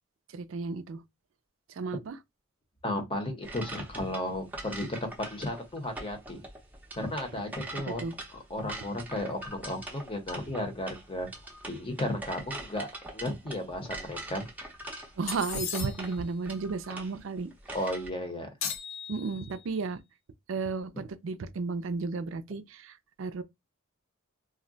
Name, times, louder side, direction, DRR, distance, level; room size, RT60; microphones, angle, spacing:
voice 1, 0.3-1.0 1.8-2.2 7.9-8.1 15.2-17.5 19.1-20.0 20.5-23.4, right 4 dB, 70° right, 0.4 m, -33 dB
voice 2, 2.8-6.4 7.0-8.0 8.5-11.3 11.7-12.9 13.1-14.5 17.7-18.5, left 1 dB, 25° left, 0.8 m, -34 dB
sound 1, 3.4-18.1, right 2 dB, 10° right, 0.6 m, -43 dB
sound 2, 15.3-16.2 18.6-19.7, left 7 dB, 75° left, 0.5 m, -37 dB
2.3 x 2.1 x 3.8 m
head